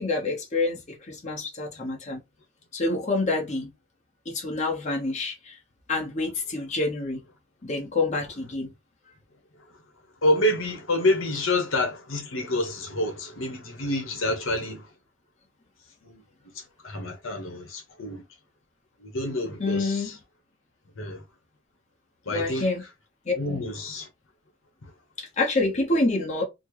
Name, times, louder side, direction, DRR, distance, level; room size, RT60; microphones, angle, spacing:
voice 1, 0.0-2.2 2.7-3.7 4.3-5.5 5.9-7.2 7.6-8.7 19.6-20.1 22.3-22.8 23.3-23.6 25.2-26.4, left 2 dB, 35° left, 1.0 m, -27 dB
voice 2, 10.2-14.8 16.0-16.2 16.8-18.2 19.0-20.1 21.0-21.2 22.3-22.7 23.4-24.1, left 1 dB, 70° left, 1.1 m, -27 dB
4.2 x 2.0 x 3.0 m
head